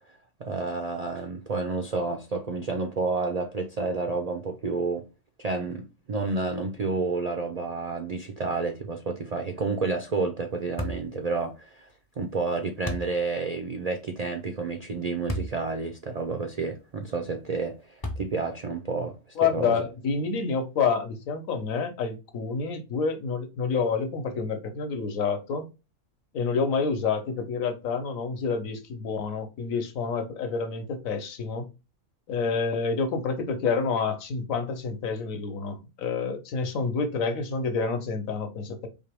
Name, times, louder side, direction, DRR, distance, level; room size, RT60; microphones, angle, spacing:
voice 1, 0.4-5.1 5.4-11.9 12.2-19.2 19.4-19.7, right 3 dB, 80° right, 0.3 m, -30 dB
sound 1, 10.8-11.1 12.8-13.1 15.3-15.6 16.2-16.3 18.0-18.5, left 1 dB, 35° left, 0.4 m, -32 dB
voice 2, 19.4-25.7 26.3-31.7 32.3-38.9, left 5 dB, 65° left, 1.2 m, -28 dB
4.5 x 2.9 x 3.4 m
omnidirectional pair, 1.5 m